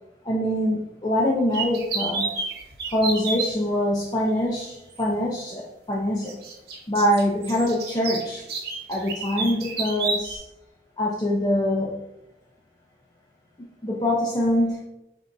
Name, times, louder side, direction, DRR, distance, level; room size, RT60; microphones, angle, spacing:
voice 1, 0.2-2.3 2.9-6.4 6.9-8.4 8.9-10.4 11.0-12.0 13.8-14.8, left 1 dB, 25° left, -3 dB, 0.5 m, -24 dB
sound 1, 1.5-3.5 5.0-5.1 6.3-10.4, right 4 dB, 60° right, 1.0 m, -30 dB
5.8 x 3.4 x 2.5 m, 0.87 s
head